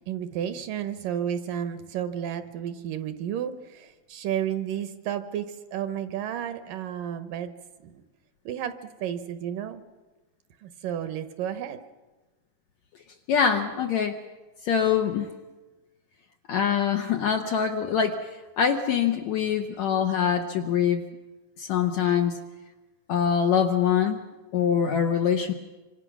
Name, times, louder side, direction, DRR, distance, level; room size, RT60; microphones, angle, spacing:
voice 1, 0.1-7.5 7.8-7.9 8.5-9.8 10.6-11.8, right 9 dB, 75° right, 10 dB, 2.3 m, -32 dB
voice 2, 13.3-14.1 14.6-15.3 16.5-18.2 18.6-21.0 21.6-22.4 23.1-24.2 24.5-25.5, left 7 dB, 70° left, 4 dB, 1.8 m, -24 dB
26.5 x 26.0 x 6.0 m, 1.2 s
omnidirectional pair, 4.3 m